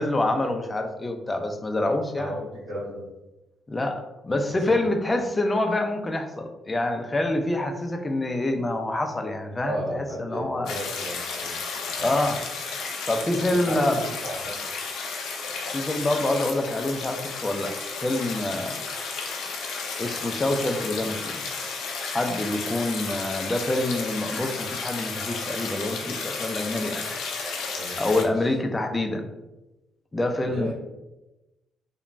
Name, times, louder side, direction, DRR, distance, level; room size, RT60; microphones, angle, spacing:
voice 1, 0.0-2.3 3.7-10.7 12.0-12.4 13.1-14.0 15.7-17.7 18.0-18.8 20.0-21.5 22.1-27.1 28.0-29.2 30.1-30.7, left 2 dB, 20° left, 5 dB, 0.4 m, -26 dB
voice 2, 2.2-3.0 4.7-4.8 9.6-11.5 12.0-12.2 13.6-14.6 27.4-28.0 28.3-28.5 30.4-30.7, right 1 dB, 75° right, -9 dB, 1.3 m, -34 dB
sound 1, 10.7-28.2, left 4 dB, 85° left, 0.5 m, -33 dB
3.0 x 2.1 x 2.5 m, 1.0 s
cardioid pair, 90°, 0 cm